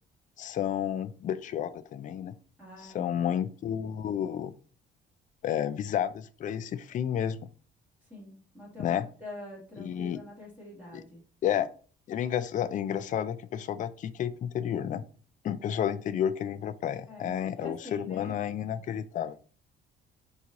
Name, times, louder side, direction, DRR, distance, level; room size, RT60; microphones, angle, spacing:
voice 1, 0.4-2.3 2.9-4.5 5.4-7.4 8.8-9.1 9.8-10.2 10.9-11.0 11.4-11.7 12.1-15.0 15.4-19.4, left 9 dB, 40° left, 13 dB, 0.4 m, -31 dB
voice 2, 2.6-3.3 8.0-11.2 17.1-18.3, left 1 dB, 10° right, -5 dB, 1.7 m, -45 dB
4.4 x 2.7 x 3.7 m, 0.41 s
cardioid pair, 105°, 20 cm